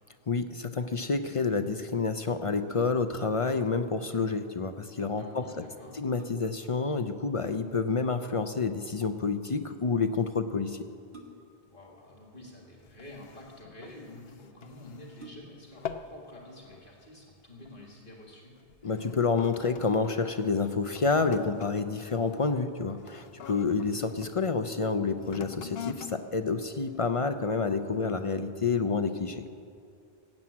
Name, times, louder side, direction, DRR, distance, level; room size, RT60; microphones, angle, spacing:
voice 1, 0.3-5.4 6.0-10.8 18.8-29.4, left 4 dB, 40° left, 8 dB, 0.5 m, -29 dB
sound 1, 2.7-3.2 5.2-5.3 5.8-6.7 8.3-8.7 11.1-11.7 12.7-13.4 14.1-14.2 14.5-14.6 15.1-15.8 16.3-16.4, right 1 dB, 85° right, 1.9 m, -52 dB
voice 2, 5.2-6.0 11.6-18.5, left 1 dB, 55° left, -1 dB, 2.1 m, -49 dB
sound 2, 12.8-15.4 15.7-16.2 16.6-16.9 17.6-17.8 18.6-24.4 25.2-27.5 28.1-28.2, left 8 dB, 75° left, 0.9 m, -45 dB
17.0 x 7.5 x 8.5 m, 2.4 s
omnidirectional pair, 1.0 m